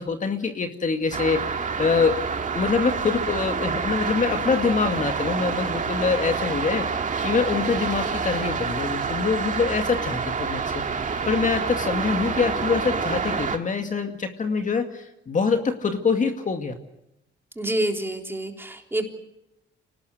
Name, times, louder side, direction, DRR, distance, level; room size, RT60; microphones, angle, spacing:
voice 1, 0.0-1.4 1.8-2.2 2.5-10.8 11.3-16.8, left 5 dB, 40° left, 6 dB, 2.2 m, -25 dB
sound 1, 1.1-13.6, right 5 dB, 40° right, 2.3 m, -27 dB
voice 2, 17.6-19.0, right 1 dB, 10° right, 3 dB, 3.7 m, -27 dB
25.0 x 19.0 x 8.1 m, 0.86 s
cardioid pair, 90°, 20 cm